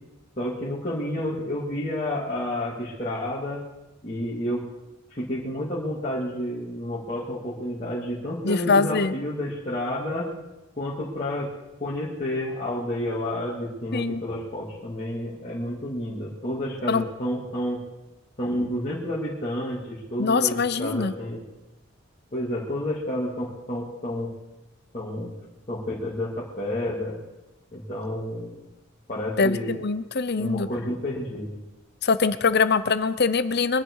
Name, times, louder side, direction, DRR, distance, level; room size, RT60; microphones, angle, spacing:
voice 1, 0.4-3.6 4.0-4.6 5.1-10.3 10.8-11.5 11.8-17.8 18.4-21.4 22.3-24.3 24.9-25.3 25.7-27.2 27.7-28.6 29.1-29.7 30.4-31.6, left 1 dB, 35° left, -9 dB, 2.8 m, -30 dB
voice 2, 8.4-9.1 13.9-14.2 16.9-17.0 20.2-21.1 29.4-30.7 32.0-33.8, left 4 dB, 55° left, 13 dB, 0.8 m, -23 dB
23.5 x 10.0 x 4.8 m, 1.0 s
head